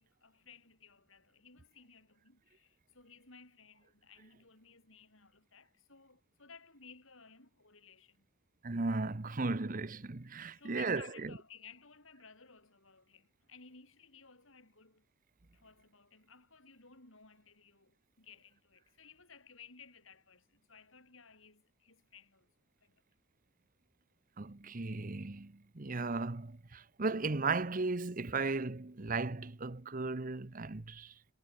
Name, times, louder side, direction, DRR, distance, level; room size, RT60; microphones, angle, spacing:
voice 1, 0.0-8.3 10.5-15.1 15.5-22.5 22.8-23.0, left 5 dB, 75° left, 7.5 m, -58 dB
voice 2, 8.6-11.3 24.4-31.1, right 3 dB, 40° right, 0.9 m, -36 dB
head